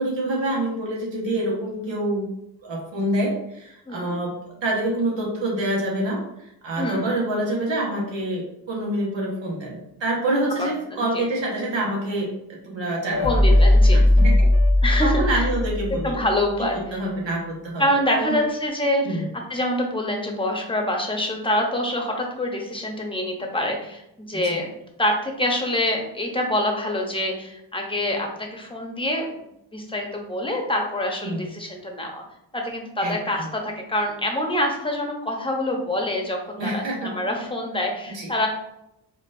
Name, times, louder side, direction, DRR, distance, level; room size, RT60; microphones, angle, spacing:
voice 1, 0.0-2.3 2.6-13.4 13.9-14.5 15.0-16.2 16.7-18.4 19.0-19.3 24.3-24.6 31.2-31.5 33.0-33.5 36.6-37.1 38.1-38.3, right 1 dB, 80° right, -3 dB, 1.3 m, -27 dB
voice 2, 3.9-4.2 6.8-7.1 10.6-11.0 13.2-14.0 14.8-15.4 16.0-16.8 17.8-19.2 19.5-24.7 25.0-29.3 29.7-32.2 32.5-38.5, left 1 dB, 10° left, 1 dB, 0.8 m, -26 dB
sound 1, 13.1-16.3, left 1 dB, 40° left, 0.7 m, -17 dB
4.3 x 2.5 x 2.6 m, 0.82 s
cardioid pair, 60°, 44 cm